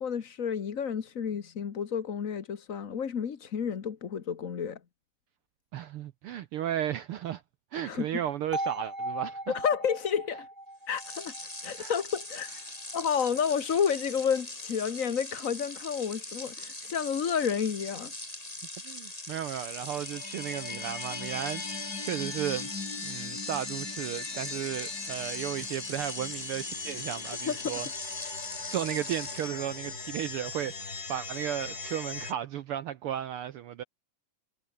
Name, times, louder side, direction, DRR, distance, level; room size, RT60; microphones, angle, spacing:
voice 1, 0.0-4.8 7.7-8.1 9.5-10.5 10.9-11.3 11.6-12.5 12.9-18.1 27.4-27.7, left 7 dB, 50° left, 1.0 m, -30 dB
voice 2, 5.7-7.4 7.7-9.5 11.7-11.9 18.8-22.7 23.0-27.9 28.7-33.8, right 10 dB, 75° right, 1.3 m, -34 dB
sound 1, 8.5-12.5, right 1 dB, 5° right, 2.6 m, -38 dB
sound 2, 10.9-29.5, left 1 dB, 10° left, 3.9 m, -42 dB
sound 3, 19.6-32.3, left 4 dB, 30° left, 3.0 m, -39 dB
omnidirectional pair, 3.3 m